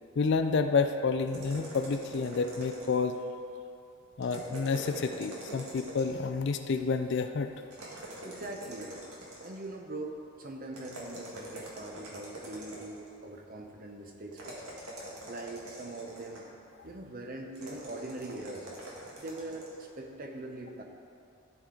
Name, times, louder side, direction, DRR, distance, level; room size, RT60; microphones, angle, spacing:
voice 1, 0.2-3.2 4.2-7.5, left 4 dB, 55° left, 7 dB, 0.4 m, -29 dB
sound 1, 1.3-3.2 4.2-6.2 7.7-9.7 10.7-13.1 14.3-16.5 17.5-19.8, right 1 dB, 85° right, 1.7 m, -44 dB
voice 2, 8.2-14.6 15.3-16.5 16.8-18.7 19.2-20.8, right 2 dB, 40° right, 2 dB, 0.8 m, -42 dB
13.5 x 4.7 x 3.8 m, 2.6 s
head